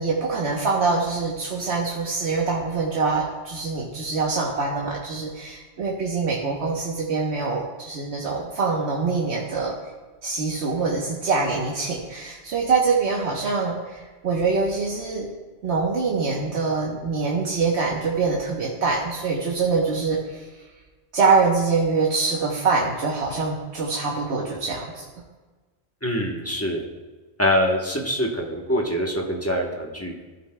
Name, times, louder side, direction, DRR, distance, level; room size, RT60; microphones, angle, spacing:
voice 1, 0.0-9.7 10.2-15.3 15.6-20.5 21.1-25.1, right 4 dB, 80° right, -3 dB, 1.3 m, -24 dB
voice 2, 26.0-26.8 27.4-30.1, equal, 15° left, -1 dB, 1.0 m, -24 dB
15.0 x 8.0 x 2.2 m, 1.3 s
omnidirectional pair, 1.1 m